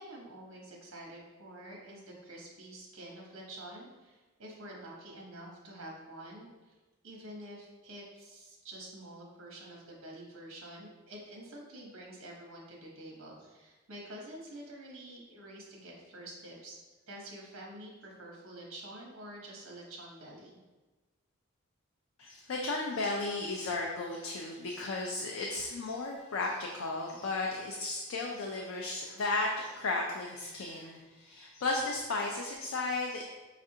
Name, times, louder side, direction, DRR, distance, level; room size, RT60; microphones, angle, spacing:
voice 1, 0.0-6.8 7.0-16.8 17.1-20.6, right 1 dB, 75° right, -2 dB, 0.9 m, -48 dB
voice 2, 22.2-33.2, left 3 dB, 70° left, 0 dB, 0.4 m, -34 dB
5.1 x 2.4 x 2.7 m, 1.2 s
head